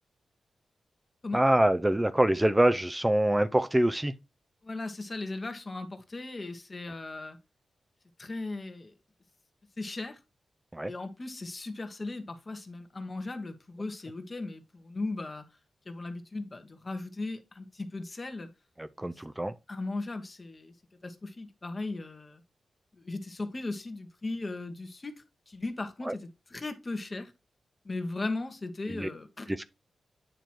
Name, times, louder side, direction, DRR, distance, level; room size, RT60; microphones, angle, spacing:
voice 1, 1.3-4.1 10.7-10.9 18.8-19.5 26.0-26.1 28.9-29.1 29.5-29.6, right 1 dB, 15° right, 0.5 m, -25 dB
voice 2, 4.6-7.4 8.2-8.9 9.8-10.2 10.8-15.4 15.9-18.5 19.7-20.7 21.0-22.4 23.0-25.1 25.5-27.3 27.8-29.5, left 2 dB, 40° left, 1.3 m, -37 dB
9.1 x 3.0 x 4.4 m
cardioid pair, 45°, 0 cm